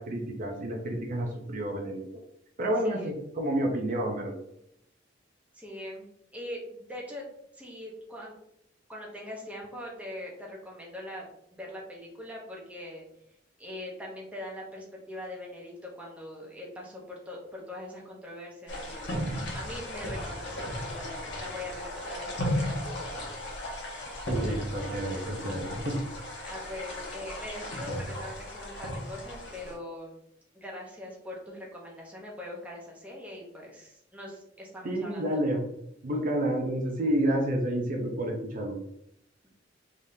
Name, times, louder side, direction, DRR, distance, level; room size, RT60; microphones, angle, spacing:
voice 1, 0.0-2.0 2.6-4.4 24.3-26.1 34.8-35.6 36.0-38.8, right 1 dB, 45° right, 1 dB, 0.6 m, -29 dB
voice 2, 5.5-6.1 6.3-7.2 7.5-8.3 8.9-13.1 13.6-19.2 19.5-23.1 26.4-30.2 30.5-35.2 39.4-39.5, left 1 dB, 5° right, -3 dB, 0.9 m, -42 dB
sound 1, 18.7-29.7, left 1 dB, 65° left, 1.1 m, -35 dB
3.6 x 3.6 x 2.7 m, 0.77 s
head